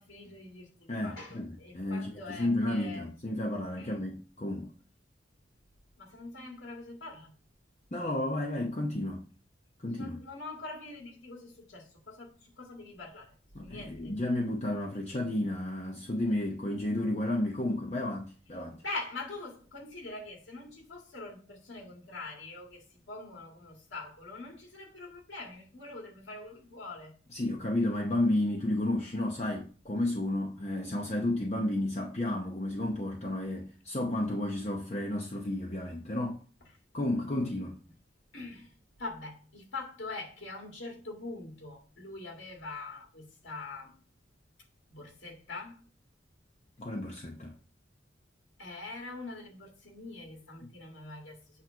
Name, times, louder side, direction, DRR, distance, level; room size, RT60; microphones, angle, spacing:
voice 1, 0.0-3.1 3.8-4.0 6.0-7.3 9.9-14.1 18.8-27.2 38.3-38.7 39.0-44.0 44.9-45.8 48.6-51.4, left 3 dB, 75° left, 1.9 m, -43 dB
voice 2, 0.9-4.7 7.9-9.2 9.8-10.2 13.5-18.8 27.3-36.4 36.9-37.8 46.8-47.5, left 1 dB, 35° left, 0.8 m, -32 dB
8.3 x 3.0 x 5.6 m
head